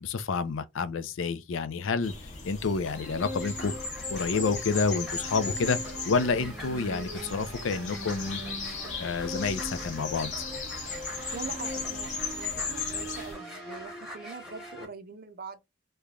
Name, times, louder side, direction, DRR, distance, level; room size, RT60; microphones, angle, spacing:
voice 1, 0.0-2.1 2.4-3.7 4.1-5.8 6.1-8.4 9.0-10.3, left 4 dB, 70° left, 0.4 m, -29 dB
sound 1, 2.0-13.3, left 4 dB, 35° left, 0.9 m, -37 dB
sound 2, 2.9-14.8, equal, 5° right, 1.0 m, -41 dB
sound 3, 6.5-13.9, right 5 dB, 90° right, 0.5 m, -51 dB
voice 2, 11.3-15.6, right 4 dB, 45° right, 0.6 m, -43 dB
3.2 x 2.2 x 3.6 m
head